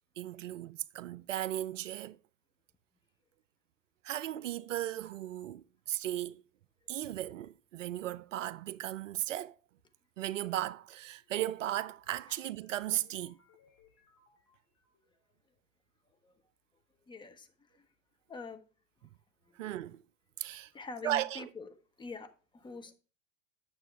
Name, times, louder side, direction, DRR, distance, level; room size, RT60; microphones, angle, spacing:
voice 1, 0.2-2.2 4.0-6.4 6.9-9.6 10.2-13.4 19.6-20.0 20.4-20.7 21.0-21.4, right 13 dB, 65° right, 0.5 m, -36 dB
sound 1, 11.1-15.3, left 5 dB, 40° left, 3.3 m, -68 dB
voice 2, 17.1-17.5 17.8-17.9 18.3-18.6 20.7-21.7 22.0-22.9, left 4 dB, 10° left, 0.8 m, -45 dB
9.0 x 7.0 x 3.1 m
figure-of-eight pair, 90°, 41 cm